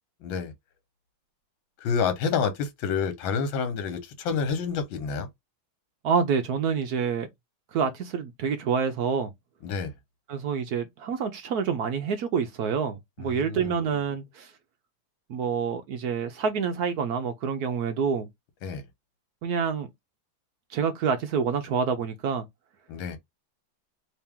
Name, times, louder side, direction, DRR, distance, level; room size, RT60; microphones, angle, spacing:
voice 1, 0.2-0.5 1.8-5.3 9.6-9.9 13.2-13.8 18.6-18.8 22.9-23.2, left 6 dB, 70° left, 1.6 m, -28 dB
voice 2, 6.0-7.3 7.7-9.3 10.3-14.5 15.3-18.3 19.4-19.9 20.7-22.5, right 6 dB, 75° right, 0.8 m, -27 dB
3.3 x 2.8 x 3.5 m
omnidirectional pair, 2.3 m